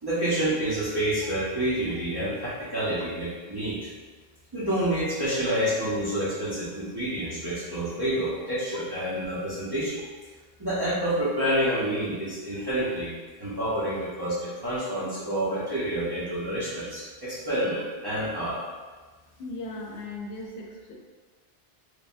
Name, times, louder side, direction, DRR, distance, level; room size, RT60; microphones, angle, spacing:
voice 1, 0.0-3.9 4.5-10.0 10.6-13.1 13.4-18.6, right 1 dB, 30° right, -10 dB, 0.5 m, -28 dB
voice 2, 19.4-21.0, left 2 dB, 75° left, -2 dB, 0.8 m, -37 dB
3.2 x 2.1 x 2.5 m, 1.4 s
omnidirectional pair, 1.1 m